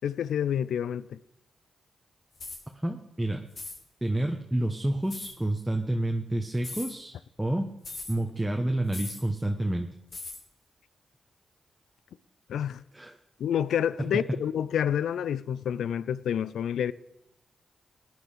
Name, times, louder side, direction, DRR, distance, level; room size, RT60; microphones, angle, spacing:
voice 1, 0.0-1.2 12.5-12.8 13.4-16.9, left 9 dB, 85° left, 0.4 m, -28 dB
sound 1, 2.4-2.6 3.5-3.8 5.1-5.3 6.6-6.9 7.8-8.2 8.9-9.3 10.1-10.4, left 3 dB, 55° left, 2.9 m, -39 dB
voice 2, 2.8-3.4 4.0-7.7 8.1-9.9 12.9-13.1, right 1 dB, 10° right, 1.2 m, -29 dB
17.0 x 9.6 x 5.1 m
cardioid pair, 55°, 0 cm